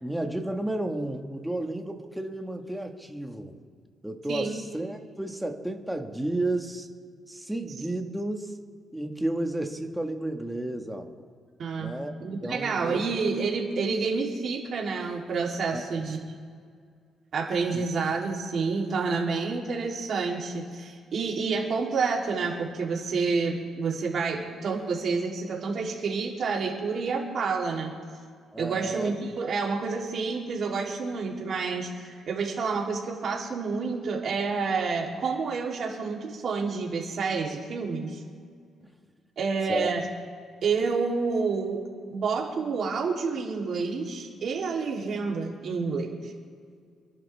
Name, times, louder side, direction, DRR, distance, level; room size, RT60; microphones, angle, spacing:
voice 1, 0.0-3.5 4.0-6.9 7.3-8.5 8.9-11.3 11.8-12.1 12.4-13.0 15.7-16.0 17.7-17.8 28.5-29.1 38.8-38.9 39.7-39.9, right 1 dB, 5° right, 3 dB, 1.7 m, -32 dB
voice 2, 11.6-11.9 12.2-16.2 17.3-27.9 28.6-38.2 39.4-40.0 40.6-41.8 42.1-46.3, right 4 dB, 60° right, -1 dB, 3.4 m, -29 dB
27.5 x 11.0 x 3.6 m, 2.1 s
cardioid pair, 90°, 0 cm